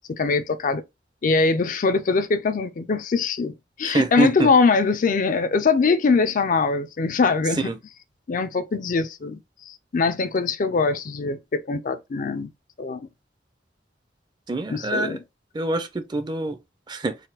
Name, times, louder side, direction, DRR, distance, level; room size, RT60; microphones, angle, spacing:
voice 1, 0.2-0.8 1.2-3.5 3.8-7.7 8.3-9.4 9.7-12.5 12.8-13.1 14.7-15.2, left 4 dB, 50° left, 0.4 m, -22 dB
voice 2, 3.8-4.5 7.6-7.8 14.5-15.2 15.5-16.6 16.9-17.2, right 2 dB, 25° right, 0.5 m, -25 dB
4.1 x 2.2 x 3.9 m
head